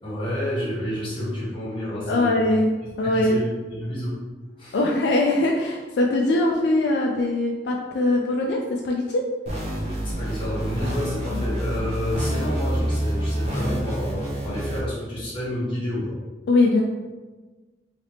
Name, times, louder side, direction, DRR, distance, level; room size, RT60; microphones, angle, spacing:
voice 1, 0.0-2.4 2.8-4.1 4.6-4.8 10.0-16.2, equal, 30° left, -8 dB, 1.3 m, -29 dB
voice 2, 2.1-2.7 3.0-3.4 4.7-9.2 11.3-11.4 16.5-16.8, left 2 dB, 70° left, 0 dB, 0.3 m, -21 dB
sound 1, 9.5-14.8, equal, 35° right, 0.8 m, -27 dB
3.2 x 2.8 x 2.8 m, 1.3 s
head